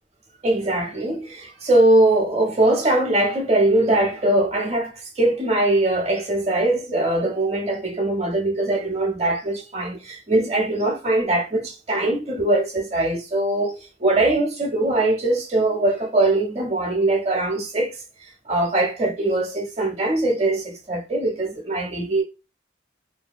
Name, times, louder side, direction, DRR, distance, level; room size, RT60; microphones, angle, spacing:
voice 1, 0.4-18.0 18.5-22.2, right 2 dB, 35° right, 0.8 m, -21 dB
2.8 x 2.7 x 2.2 m
head